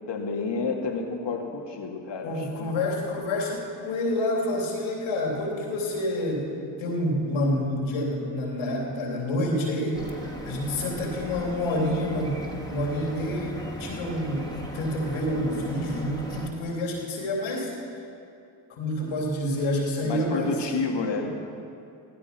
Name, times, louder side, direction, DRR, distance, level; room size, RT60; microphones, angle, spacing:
voice 1, 0.1-2.7 20.0-21.3, left 4 dB, 60° left, 2 dB, 2.2 m, -30 dB
voice 2, 2.2-6.5 6.8-10.1 10.4-17.7 18.7-20.6, left 1 dB, 75° left, -1 dB, 3.1 m, -28 dB
sound 1, 9.9-16.5, equal, 10° left, 3.3 m, -38 dB
15.5 x 15.0 x 5.8 m, 2.7 s
hypercardioid pair, 40°, 47 cm